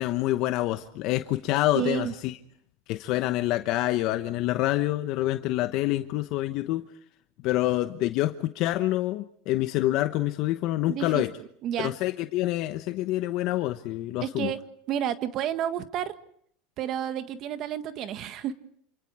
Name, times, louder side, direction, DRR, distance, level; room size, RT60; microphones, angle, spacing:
voice 1, 0.0-2.3 2.9-6.9 7.4-11.3 11.8-14.5, left 16 dB, 55° left, 9 dB, 1.0 m, -27 dB
voice 2, 1.7-2.1 10.9-11.9 14.2-14.6 14.9-16.1 16.8-18.5, right 10 dB, 45° right, 10 dB, 1.6 m, -31 dB
28.0 x 27.0 x 4.8 m, 0.65 s
supercardioid pair, 130°, 0 cm